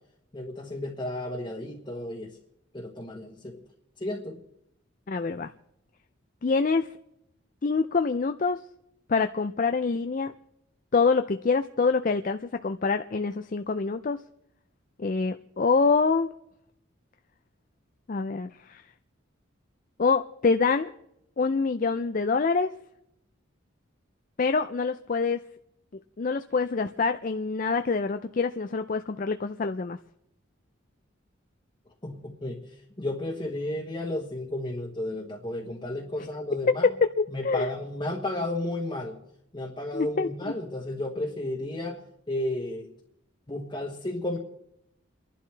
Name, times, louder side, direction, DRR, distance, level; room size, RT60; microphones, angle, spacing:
voice 1, 0.3-2.4 2.7-3.6 4.0-4.4 32.0-32.6 33.0-36.9 37.3-39.2 39.5-42.9 43.5-44.4, left 1 dB, 25° left, -2 dB, 1.3 m, -33 dB
voice 2, 5.1-5.5 6.4-6.9 7.6-8.6 9.1-10.3 10.9-14.2 15.0-16.3 18.1-18.8 20.0-20.9 21.4-22.7 24.4-25.4 26.2-30.0 36.7-36.8 37.0-37.1 37.4-37.7 39.9-40.3, left 4 dB, 40° left, 8 dB, 0.4 m, -25 dB
29.0 x 11.5 x 3.3 m, 0.79 s
head